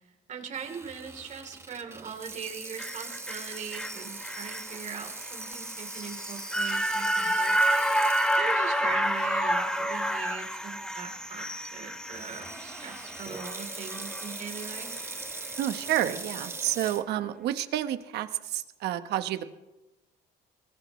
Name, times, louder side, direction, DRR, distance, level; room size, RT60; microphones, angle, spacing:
voice 1, 0.3-7.6 8.4-15.0, right 6 dB, 45° right, 3 dB, 3.5 m, -41 dB
Water tap faucet / Sink (filling or washing), 0.5-8.9 9.4-9.5 10.3-10.5 12.1-17.0, right 3 dB, 15° right, 1.5 m, -41 dB
sound 1, 2.8-15.1 15.5-15.6, equal, 5° left, 1.3 m, -30 dB
voice 2, 15.6-19.4, right 12 dB, 80° right, 10 dB, 1.2 m, -30 dB
23.5 x 19.0 x 3.2 m, 1.0 s
cardioid pair, 110°, 17 cm